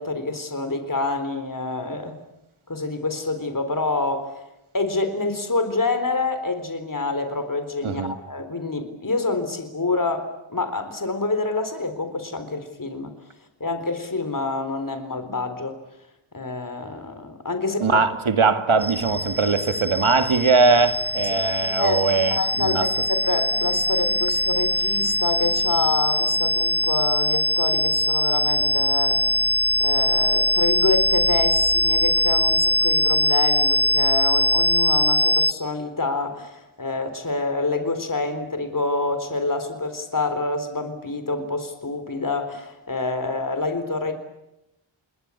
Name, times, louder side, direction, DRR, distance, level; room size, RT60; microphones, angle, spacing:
voice 1, 0.0-2.2 2.7-4.4 4.7-13.1 13.6-15.8 16.3-18.0 21.8-29.4 29.8-44.2, left 3 dB, 40° left, 4.0 m, -27 dB
voice 2, 7.8-8.1 17.8-22.9, right 4 dB, 70° right, 2.2 m, -21 dB
sound 1, 18.8-35.5, equal, 5° right, 0.9 m, -22 dB
29.5 x 20.5 x 8.4 m
cardioid pair, 45°, 50 cm